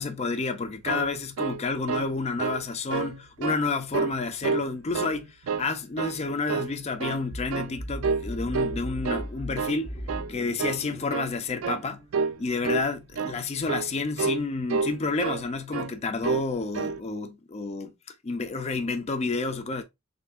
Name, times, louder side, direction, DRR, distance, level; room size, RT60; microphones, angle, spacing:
voice 1, 0.0-9.9 10.3-12.0 12.4-17.9 18.2-19.8, left 3 dB, 30° left, 0.4 m, -30 dB
sound 1, 0.6-2.1 2.4-2.6 2.9-3.6 3.9-4.7 4.9-5.7 6.0-6.2 6.5-7.3 7.5-7.8 8.0-8.3 8.5-9.3 9.5-9.8 10.1-10.3 10.6-10.8 11.1-11.3 11.6-11.8 12.1-12.4 12.6-12.9 13.1-13.4 13.7-13.9 14.2-14.4 14.7-15.5 15.7-15.9 16.2-16.5 16.7-17.0, right 5 dB, 65° right, 0.3 m, -29 dB
sound 2, 7.3-12.9, equal, 60° left, 1.0 m, -39 dB
3.1 x 2.6 x 3.4 m
head